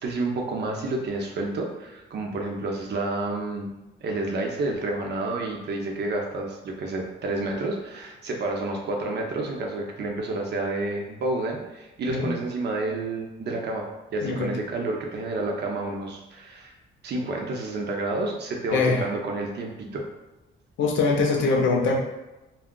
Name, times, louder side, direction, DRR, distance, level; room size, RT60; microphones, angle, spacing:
voice 1, 0.0-3.7 4.0-13.9 14.1-16.7 17.0-20.0, right 2 dB, 60° right, 1 dB, 0.7 m, -29 dB
voice 2, 14.2-14.5 18.7-19.0 20.8-22.0, left 4 dB, 70° left, 1 dB, 0.6 m, -22 dB
2.3 x 2.1 x 3.7 m, 1.0 s
cardioid pair, 90°, 20 cm